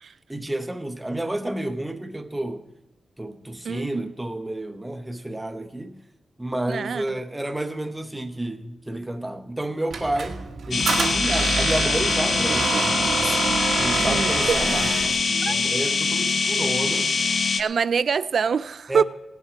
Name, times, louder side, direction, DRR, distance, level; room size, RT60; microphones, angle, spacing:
voice 1, 0.3-2.6 3.2-6.0 6.4-12.9 13.2-13.5 13.8-17.1 18.9-19.0, right 1 dB, 10° right, 0.8 m, -30 dB
voice 2, 3.7-4.1 6.7-7.0 14.0-14.6 15.5-15.6 17.6-19.0, right 6 dB, 55° right, 0.3 m, -24 dB
Squeak, 9.9-15.2, right 5 dB, 85° right, 1.4 m, -27 dB
sound 1, 10.7-17.6, left 4 dB, 50° left, 0.5 m, -23 dB
19.0 x 7.3 x 5.0 m
wide cardioid pair, 170°, 0 cm